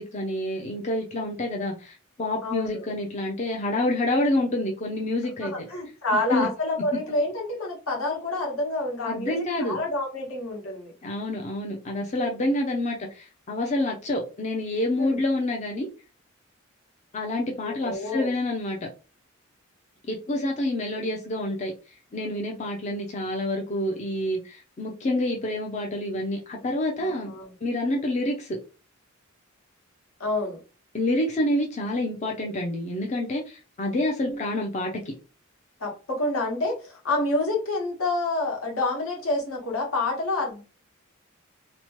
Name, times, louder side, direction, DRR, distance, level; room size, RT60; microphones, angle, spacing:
voice 1, 0.0-5.7 6.3-6.5 9.0-9.8 11.0-15.9 17.1-18.8 20.0-21.7 22.1-27.3 27.6-28.6 30.9-35.1, left 1 dB, 35° left, 0.5 m, -28 dB
voice 2, 5.4-10.9 15.0-15.2 17.6-18.3 27.0-27.5 30.2-30.6 34.2-34.4 35.8-40.6, left 2 dB, 80° left, 1.2 m, -28 dB
2.9 x 2.1 x 2.9 m
head